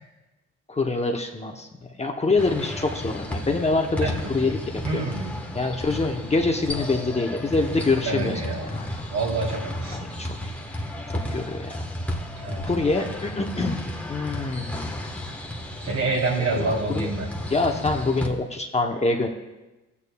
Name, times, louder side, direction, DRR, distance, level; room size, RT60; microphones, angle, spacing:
voice 1, 0.7-1.7 2.0-4.6 4.9-5.0 5.5-8.9 9.9-10.4 11.3-11.8 12.6-13.8 14.1-14.9 16.5-17.1 17.5-19.3, left 3 dB, 20° left, 2 dB, 0.8 m, -25 dB
sound 1, 2.4-18.3, left 1 dB, 5° left, 1.2 m, -33 dB
voice 2, 4.0-4.5 4.8-5.4 8.0-8.7 9.1-10.0 12.4-12.6 15.8-17.3, right 3 dB, 65° right, -2 dB, 3.1 m, -27 dB
15.0 x 8.4 x 2.3 m, 1.1 s
cardioid pair, 90°, 30 cm